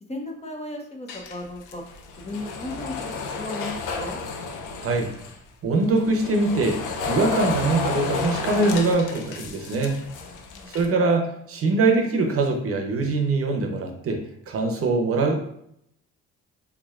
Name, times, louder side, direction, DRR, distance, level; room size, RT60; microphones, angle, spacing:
voice 1, 0.0-1.8 2.2-4.2 10.5-11.0, left 2 dB, 20° left, 1 dB, 0.7 m, -36 dB
sound 1, 1.1-5.4 5.9-10.9, left 4 dB, 90° left, 0.5 m, -32 dB
voice 2, 4.8-5.1 5.6-6.8 7.1-10.0 10.7-14.2 14.5-15.4, right 3 dB, 50° right, 2 dB, 0.7 m, -23 dB
3.5 x 3.2 x 2.4 m, 0.72 s
cardioid pair, 90°, 30 cm